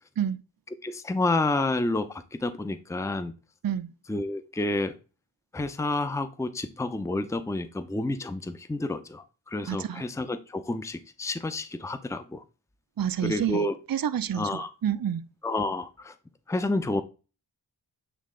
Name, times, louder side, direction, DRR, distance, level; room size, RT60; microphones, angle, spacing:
voice 1, 0.8-3.3 4.1-5.0 5.5-12.4 13.2-13.8 14.3-14.7 15.4-16.1 16.5-17.0, left 2 dB, 5° left, 0.6 m, -29 dB
voice 2, 9.7-10.0 13.0-13.6 13.9-15.2, right 9 dB, 55° right, 0.6 m, -28 dB
8.4 x 3.2 x 3.8 m
cardioid pair, 40°, 43 cm